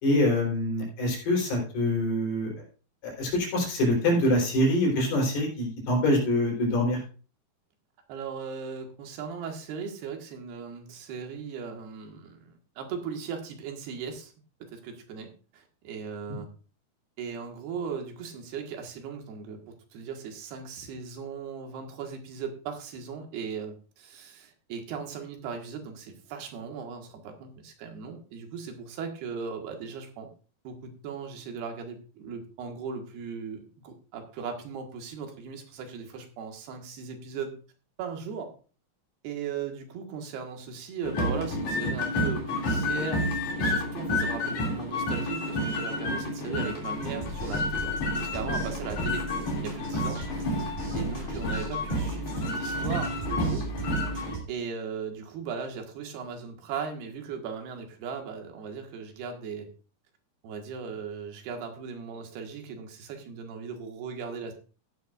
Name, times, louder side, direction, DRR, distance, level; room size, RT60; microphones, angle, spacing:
voice 1, 0.0-2.5 3.0-7.0 16.3-16.4, left 1 dB, 75° left, -1 dB, 5.7 m, -25 dB
voice 2, 8.1-14.3 14.7-16.5 17.2-30.3 30.7-37.5 38.0-38.5 39.2-47.9 48.2-53.6 54.5-59.7 60.4-64.5, right 6 dB, 85° right, 4 dB, 3.7 m, -38 dB
sound 1, 41.0-54.4, left 1 dB, 50° left, 3.8 m, -30 dB
sound 2, 46.8-54.4, right 1 dB, 65° right, 7.0 m, -39 dB
14.5 x 10.0 x 2.5 m, 0.35 s
omnidirectional pair, 4.5 m